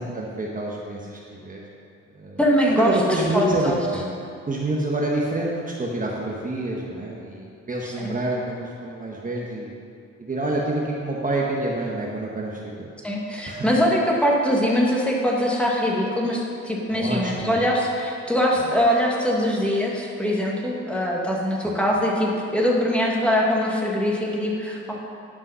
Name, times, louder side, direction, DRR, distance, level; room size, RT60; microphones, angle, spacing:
voice 1, 0.0-1.6 2.1-2.4 2.8-4.1 4.4-9.7 10.2-12.9 13.5-13.6 16.9-17.6 18.6-18.7 21.6-21.8, right 1 dB, 25° right, -3 dB, 1.3 m, -27 dB
voice 2, 2.4-2.9 3.3-3.8 7.8-8.1 13.0-25.0, equal, 5° left, -3 dB, 1.8 m, -22 dB
11.0 x 5.4 x 5.7 m, 2.4 s
cardioid pair, 90°, 30 cm